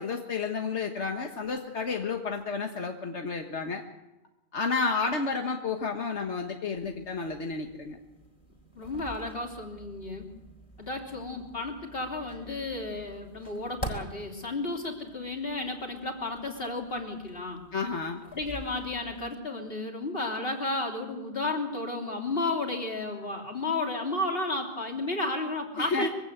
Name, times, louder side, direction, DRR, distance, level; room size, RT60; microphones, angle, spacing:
voice 1, 0.0-3.8 4.5-8.0 17.7-18.2 25.8-26.1, left 4 dB, 85° left, 3 dB, 1.7 m, -31 dB
sound 1, 6.7-19.3, right 2 dB, 30° left, 3.5 m, -46 dB
voice 2, 8.8-10.3 10.8-17.6 18.3-26.1, left 2 dB, 55° left, 2 dB, 3.4 m, -33 dB
23.5 x 16.5 x 8.0 m, 1.0 s
omnidirectional pair, 1.1 m